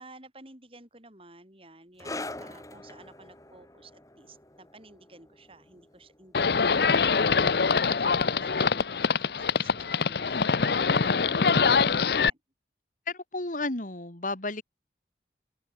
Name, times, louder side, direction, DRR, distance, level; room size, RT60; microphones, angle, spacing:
voice 1, 0.0-12.4, right 2 dB, 30° right, 7.5 m, -52 dB
sound 1, 2.0-9.0 9.2-9.5 10.2-10.3, left 2 dB, 20° left, 3.8 m, -45 dB
Livestock farm animals working animals, 6.3-12.3, left 5 dB, 60° left, 0.7 m, -24 dB
voice 2, 13.1-14.6, left 2 dB, 45° left, 2.1 m, -32 dB
open air
head